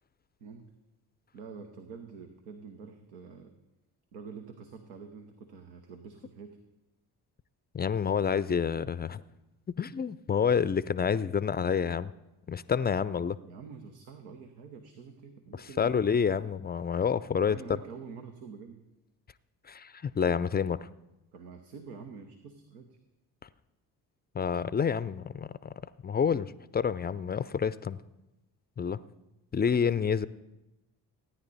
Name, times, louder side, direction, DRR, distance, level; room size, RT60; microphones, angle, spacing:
voice 1, 0.4-0.7 1.3-3.5 4.1-6.6 13.4-16.1 17.3-18.8 21.3-23.0, right 5 dB, 85° right, 5 dB, 0.9 m, -47 dB
voice 2, 7.7-9.2 9.8-12.1 12.5-13.4 15.6-17.6 19.7-20.9 24.3-25.7 26.0-28.0 28.8-29.0 29.5-30.3, left 6 dB, 20° left, 17 dB, 0.4 m, -28 dB
16.5 x 9.8 x 4.0 m, 0.97 s
hypercardioid pair, 50°, 47 cm